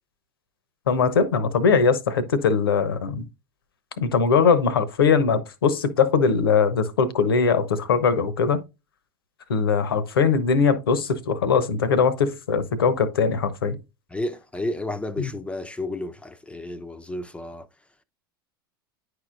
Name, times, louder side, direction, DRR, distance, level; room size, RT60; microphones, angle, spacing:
voice 1, 0.9-3.3 4.0-8.6 9.5-13.8 15.2-15.3, left 5 dB, 80° left, 0.9 m, -21 dB
voice 2, 14.1-17.7, left 1 dB, 10° left, 0.5 m, -31 dB
9.6 x 4.7 x 2.5 m
hypercardioid pair, 85°, 12 cm